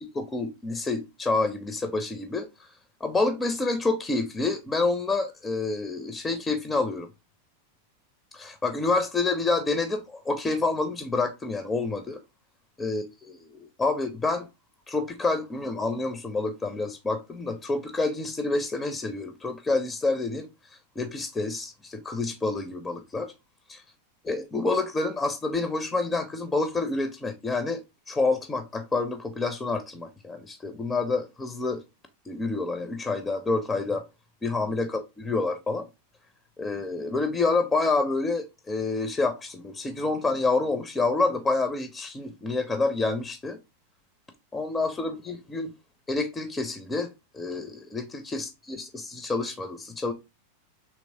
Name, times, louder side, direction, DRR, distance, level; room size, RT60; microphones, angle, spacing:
voice 1, 0.0-2.7 3.0-7.1 8.3-12.2 12.8-14.5 14.9-20.5 21.0-23.3 23.7-23.8 24.2-27.8 28.1-31.8 32.3-34.1 34.4-35.9 36.6-43.6 44.5-45.7 46.1-50.1, left 3 dB, 15° left, 0.4 m, -28 dB
3.4 x 3.0 x 2.5 m
figure-of-eight pair, 90°, 0 cm